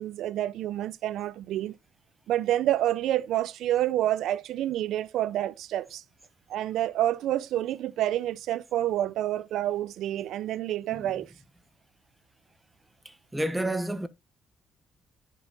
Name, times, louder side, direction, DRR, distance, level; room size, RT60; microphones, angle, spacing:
voice 1, 0.0-1.8 2.3-6.0 6.5-11.3, right 13 dB, 80° right, 0.5 m, -28 dB
voice 2, 13.0-14.1, right 1 dB, 10° right, 1.0 m, -30 dB
10.5 x 5.4 x 2.5 m
cardioid pair, 90°, 0 cm